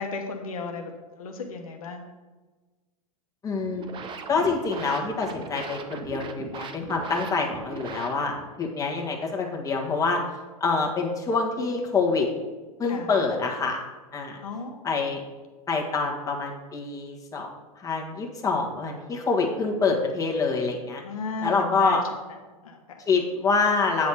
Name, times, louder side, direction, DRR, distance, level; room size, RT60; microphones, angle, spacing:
voice 1, 0.0-2.0 12.9-13.1 14.4-14.8 21.0-22.0 22.6-23.0, left 3 dB, 70° left, 3 dB, 1.1 m, -35 dB
voice 2, 3.4-3.9 4.3-10.2 10.6-12.3 12.8-13.8 14.1-14.4 14.8-15.2 15.7-17.5 17.8-21.0 21.4-22.0 23.1-24.1, left 4 dB, 20° left, 0 dB, 1.6 m, -26 dB
sound 1, 3.6-8.5, right 4 dB, 25° right, 0.8 m, -39 dB
8.6 x 4.1 x 6.3 m, 1.3 s
hypercardioid pair, 105°, 19 cm